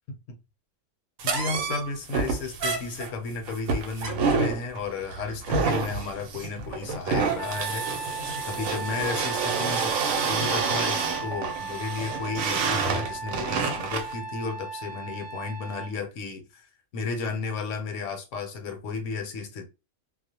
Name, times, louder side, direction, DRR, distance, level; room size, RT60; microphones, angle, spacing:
voice 1, 1.2-8.0 8.4-10.0 10.3-16.7 16.9-19.7, left 4 dB, 70° left, 1.0 m, -33 dB
sound 1, 1.2-14.1, right 4 dB, 85° right, 1.0 m, -28 dB
Trumpet, 7.3-15.9, right 5 dB, 5° right, 0.8 m, -36 dB
2.4 x 2.1 x 2.7 m
omnidirectional pair, 1.4 m